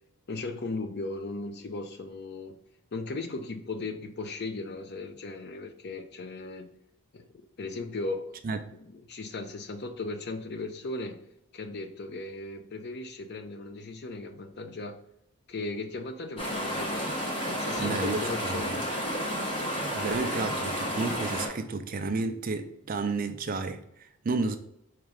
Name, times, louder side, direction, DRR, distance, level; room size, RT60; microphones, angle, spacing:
voice 1, 0.3-2.6 2.9-6.7 7.1-7.2 7.6-8.4 8.7-11.2 11.5-15.0 15.5-17.2 17.5-19.0, left 3 dB, 50° left, 0.5 m, -37 dB
sound 1, 16.4-21.5, equal, 25° left, 1.0 m, -31 dB
voice 2, 17.8-18.8 19.8-24.6, right 3 dB, 40° right, 0.4 m, -32 dB
4.9 x 3.2 x 3.4 m
head